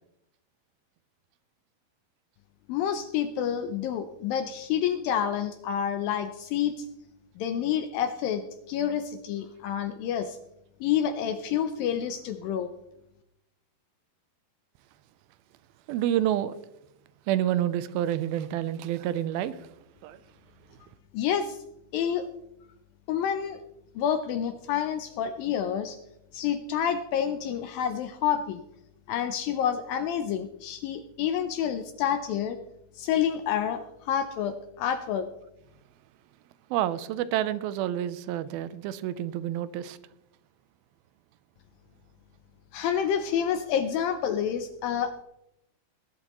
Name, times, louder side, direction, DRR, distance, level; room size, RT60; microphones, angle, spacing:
voice 1, 2.7-6.9 7.4-10.4 10.8-12.7 21.1-21.6 21.9-22.3 23.1-23.6 24.0-26.0 26.3-28.6 29.1-32.6 33.0-35.3 42.7-45.2, left 9 dB, 80° left, 8 dB, 2.1 m, -28 dB
voice 2, 15.9-16.5 17.3-19.7 20.0-20.2 36.7-40.0, right 12 dB, 80° right, 14 dB, 2.3 m, -28 dB
20.5 x 11.5 x 3.0 m, 0.86 s
omnidirectional pair, 4.7 m